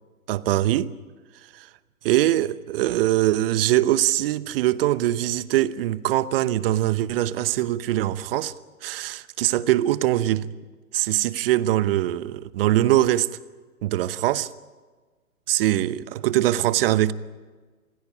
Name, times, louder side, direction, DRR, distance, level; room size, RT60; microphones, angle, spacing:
voice 1, 0.3-0.9 1.5-1.7 2.0-8.5 8.8-10.5 10.9-13.3 13.8-14.5 15.5-17.1, right 14 dB, 40° right, 0.9 m, -22 dB
23.0 x 16.0 x 9.8 m
hypercardioid pair, 120°, 42 cm